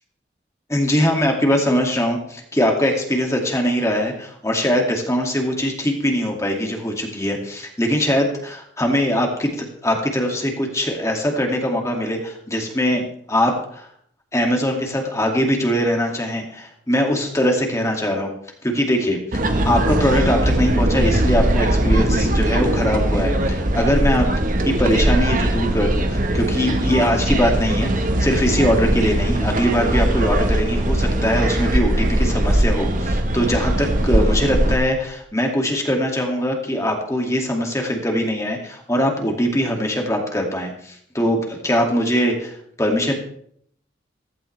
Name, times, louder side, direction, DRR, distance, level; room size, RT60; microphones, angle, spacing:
voice 1, 0.7-13.0 13.3-13.9 14.3-18.3 18.6-24.3 24.6-43.1, equal, 15° left, 1 dB, 2.3 m, -21 dB
sound 1, 19.3-34.8, right 1 dB, 45° right, 1.3 m, -20 dB
15.5 x 15.5 x 3.3 m, 0.65 s
head